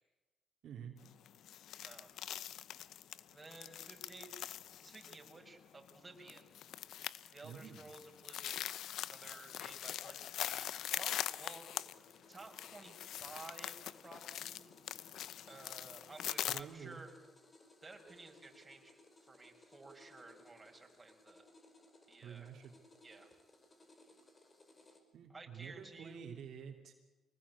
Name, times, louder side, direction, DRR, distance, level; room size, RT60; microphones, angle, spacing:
voice 1, 0.6-1.0 7.4-7.9 16.5-17.0 22.2-22.7 25.1-26.9, right 7 dB, 70° right, 2 dB, 2.9 m, -49 dB
sound 1, 1.0-16.6, left 11 dB, 75° left, 0.7 m, -43 dB
voice 2, 1.8-2.2 3.3-4.3 4.8-6.5 7.3-8.7 9.1-11.9 12.3-14.7 15.5-17.1 17.8-18.9 19.2-21.4 22.1-22.5 23.0-23.3 25.3-26.2, right 3 dB, 20° right, 2 dB, 5.6 m, -54 dB
sound 2, 10.7-25.0, left 2 dB, 30° left, 5.0 m, -63 dB
24.5 x 20.5 x 8.4 m, 1.2 s
cardioid pair, 90°, 0 cm